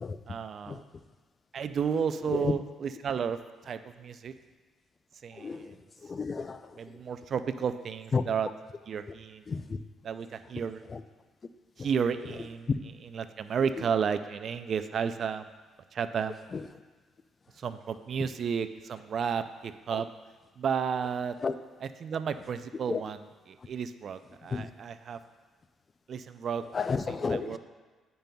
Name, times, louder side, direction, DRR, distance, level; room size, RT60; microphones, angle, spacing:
voice 1, 0.3-0.8 1.5-3.4 3.7-4.3 5.2-5.8 6.8-8.5 8.9-9.4 10.0-10.8 11.8-12.7 13.0-15.5 15.9-16.4 17.6-20.1 20.6-21.4 21.8-23.2 23.5-25.2 26.1-26.6 27.1-27.6, right 7 dB, 55° right, 10 dB, 0.3 m, -32 dB
voice 2, 5.4-5.7 6.0-6.6 8.1-8.2 9.5-9.8 10.9-11.0 12.7-12.8 16.5-16.6 19.9-20.0 21.4-21.5 22.9-23.0 24.5-24.7 26.7-27.6, left 5 dB, 35° left, 11 dB, 0.3 m, -31 dB
10.5 x 5.3 x 2.2 m, 1.3 s
cardioid pair, 95°, 0 cm